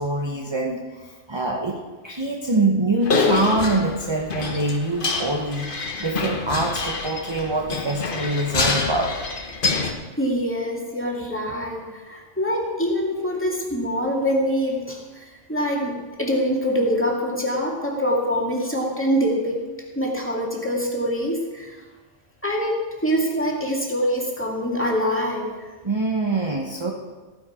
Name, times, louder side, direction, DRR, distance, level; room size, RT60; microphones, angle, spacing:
voice 1, 0.0-9.2 25.8-26.9, right 2 dB, 25° right, 0 dB, 1.0 m, -25 dB
sound 1, 3.0-9.9, left 4 dB, 45° left, 1.3 m, -26 dB
voice 2, 10.2-19.6 20.0-21.8 22.4-25.5, equal, 10° left, -2 dB, 2.2 m, -24 dB
15.0 x 9.6 x 5.0 m, 1.3 s
omnidirectional pair, 1.3 m